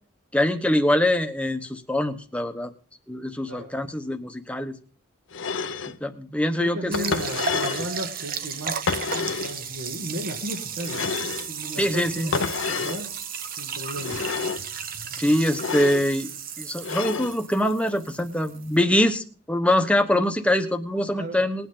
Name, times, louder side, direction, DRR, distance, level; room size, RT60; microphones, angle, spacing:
voice 1, 0.3-2.7 3.1-4.8 6.0-7.1 11.8-12.3 15.2-16.3 16.6-21.7, left 1 dB, 5° left, 6 dB, 0.9 m, -24 dB
sound 1, 5.3-6.0 6.9-7.9 8.9-9.6 10.8-11.5 12.3-13.0 14.0-14.7 15.5-16.1 16.8-17.4, left 5 dB, 65° left, 0.7 m, -29 dB
voice 2, 6.6-11.1 11.5-13.1 13.6-14.2 21.1-21.4, equal, 70° right, 0 dB, 2.2 m, -35 dB
sound 2, 6.9-18.8, right 7 dB, 45° right, 0.9 m, -34 dB
20.0 x 9.1 x 3.8 m, 0.41 s
head